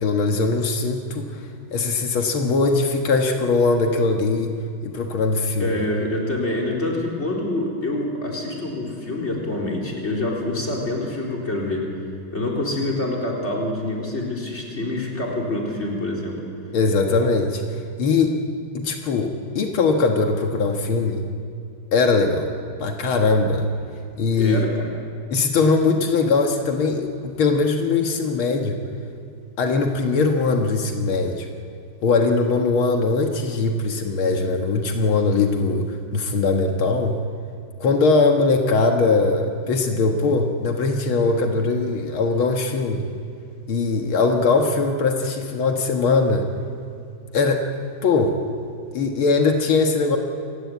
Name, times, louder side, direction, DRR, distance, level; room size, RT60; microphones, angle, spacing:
voice 1, 0.0-1.4 1.7-4.6 4.8-5.8 16.7-17.6 18.0-18.4 18.7-21.3 21.9-22.5 22.8-23.7 24.2-24.7 25.3-28.8 29.6-31.5 32.0-37.2 37.8-43.1 43.7-46.5 47.3-47.7 48.0-48.4 48.9-50.2, left 3 dB, 85° left, 3 dB, 2.3 m, -21 dB
voice 2, 5.6-11.9 12.3-16.4 24.4-24.9, left 2 dB, 30° left, -2 dB, 4.3 m, -26 dB
26.5 x 16.0 x 9.4 m, 2.4 s
omnidirectional pair, 2.2 m